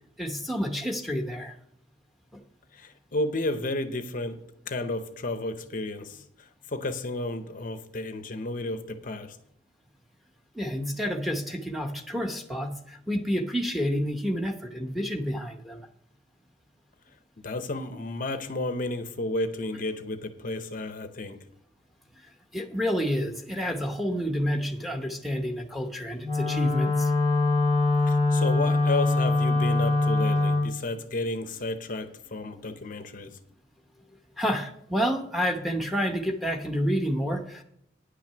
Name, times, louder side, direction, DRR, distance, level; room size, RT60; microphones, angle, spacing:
voice 1, 0.2-1.6 2.3-2.4 10.5-15.8 22.5-27.1 32.6-32.7 34.4-37.6, equal, ahead, 4 dB, 0.8 m, -29 dB
voice 2, 2.7-4.4 4.7-9.4 17.4-21.4 28.1-33.4, left 2 dB, 40° left, 9 dB, 0.7 m, -32 dB
Wind instrument woodwind instrument, 26.2-30.7, left 3 dB, 40° right, 2.5 m, -23 dB
9.8 x 5.9 x 6.7 m, 0.74 s
head